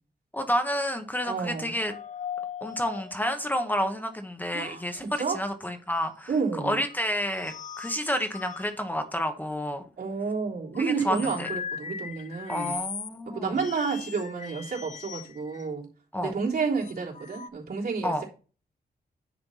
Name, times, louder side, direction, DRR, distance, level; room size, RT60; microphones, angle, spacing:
voice 1, 0.3-1.9 2.6-6.3 6.6-9.8 10.8-11.5 12.5-13.6 16.1-16.4 18.0-18.2, equal, 10° left, 6 dB, 1.0 m, -30 dB
voice 2, 1.2-1.7 4.5-5.4 6.3-6.8 10.0-12.8 13.3-15.9 16.2-18.3, right 5 dB, 70° right, -4 dB, 3.4 m, -30 dB
sound 1, 1.6-4.1 4.7-5.2 6.3-6.4 6.9-8.7 10.5-13.2 13.6-15.7 16.8-17.5, left 7 dB, 50° left, 0.6 m, -39 dB
10.0 x 4.3 x 5.6 m, 0.36 s
wide cardioid pair, 145°, 17 cm